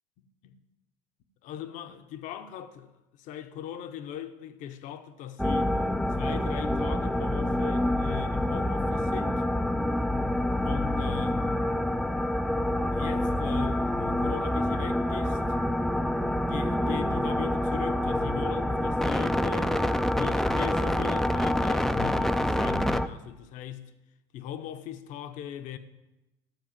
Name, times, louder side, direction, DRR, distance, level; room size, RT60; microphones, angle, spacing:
voice 1, 1.4-2.9 3.2-5.7 6.1-9.4 10.6-11.4 12.9-15.4 16.5-19.8 20.1-23.9 24.3-25.8, left 10 dB, 60° left, 0.9 m, -39 dB
sound 1, 5.4-23.1, left 1 dB, ahead, 0.4 m, -27 dB
12.0 x 4.8 x 7.4 m
supercardioid pair, 90°, 15 cm